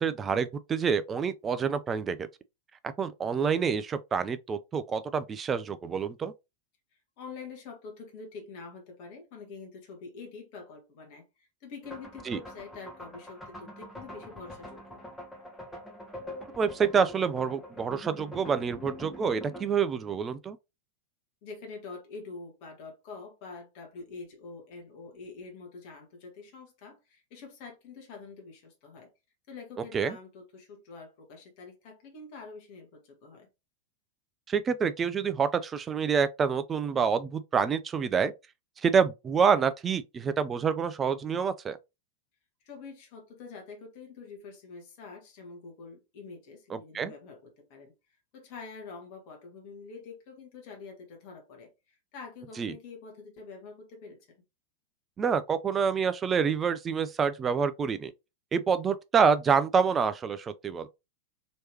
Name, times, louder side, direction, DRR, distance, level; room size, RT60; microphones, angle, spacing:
voice 1, 0.0-2.3 3.0-6.3 12.3-12.4 16.6-20.6 29.9-30.2 34.5-38.3 38.8-41.8 46.7-47.1 52.6-52.7 55.2-58.1 58.5-60.9, right 6 dB, 20° right, 0.4 m, -27 dB
voice 2, 7.2-15.0 21.4-29.1 29.5-33.5 42.6-47.9 48.3-54.4, left 4 dB, 45° left, 1.2 m, -46 dB
sound 1, 11.8-19.7, equal, 10° left, 1.1 m, -44 dB
3.2 x 3.0 x 2.9 m
figure-of-eight pair, 90°, 0 cm